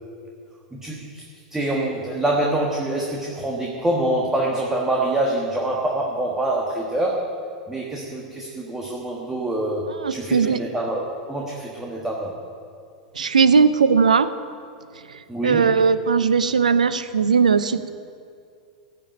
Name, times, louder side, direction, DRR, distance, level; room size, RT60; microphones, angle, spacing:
voice 1, 0.7-1.2 1.5-7.3 7.7-9.8 10.1-12.3 15.3-15.7, right 1 dB, 10° right, -2 dB, 1.5 m, -25 dB
voice 2, 9.9-10.6 13.1-14.3 15.4-17.9, right 5 dB, 80° right, 14 dB, 0.6 m, -18 dB
15.0 x 5.3 x 8.8 m, 2.3 s
figure-of-eight pair, 90°, 4 cm